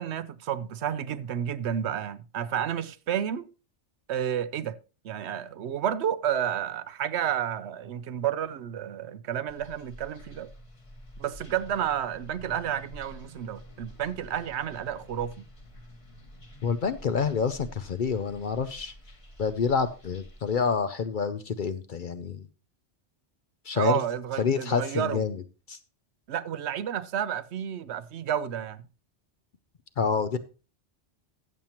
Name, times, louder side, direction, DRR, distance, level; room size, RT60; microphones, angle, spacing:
voice 1, 0.0-3.4 4.1-4.8 5.0-10.5 11.2-15.3 23.7-25.2 26.3-28.8, right 9 dB, 70° right, 0.9 m, -31 dB
sound 1, 9.5-20.8, equal, 30° left, 1.3 m, -49 dB
voice 2, 16.6-18.9 19.4-22.4 23.7-24.0 24.4-25.4 25.7-25.8 30.0-30.4, left 5 dB, 55° left, 0.6 m, -27 dB
14.5 x 7.2 x 2.9 m
omnidirectional pair, 1.2 m